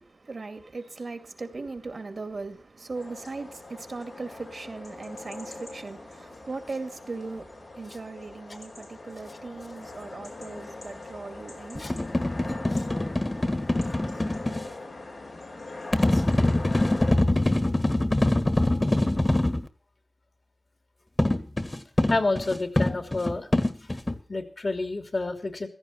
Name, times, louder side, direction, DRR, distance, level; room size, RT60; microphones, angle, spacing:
voice 1, 0.0-11.9, right 3 dB, 75° right, 2.3 m, -38 dB
sound 1, 3.0-17.1, left 2 dB, 90° left, 4.8 m, -41 dB
sound 2, 11.7-14.6 15.9-19.7 21.2-24.2, left 1 dB, 30° left, 1.7 m, -24 dB
voice 2, 22.1-23.5 24.3-25.7, left 2 dB, 60° left, 2.9 m, -29 dB
16.0 x 14.5 x 4.4 m
wide cardioid pair, 50°, 0 cm